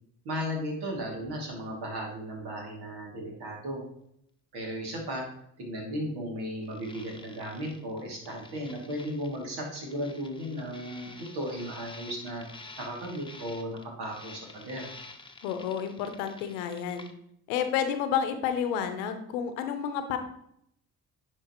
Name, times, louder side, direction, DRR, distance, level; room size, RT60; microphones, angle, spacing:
voice 1, 0.2-3.8 4.5-5.2 5.6-12.5 12.8-14.9, equal, 70° right, -1 dB, 2.6 m, -35 dB
sound 1, 6.6-17.1, left 2 dB, 10° left, 1.0 m, -49 dB
voice 2, 15.4-17.1 17.5-20.2, left 8 dB, 90° left, 8 dB, 0.8 m, -30 dB
10.0 x 4.5 x 3.0 m, 0.73 s
hypercardioid pair, 60°, 41 cm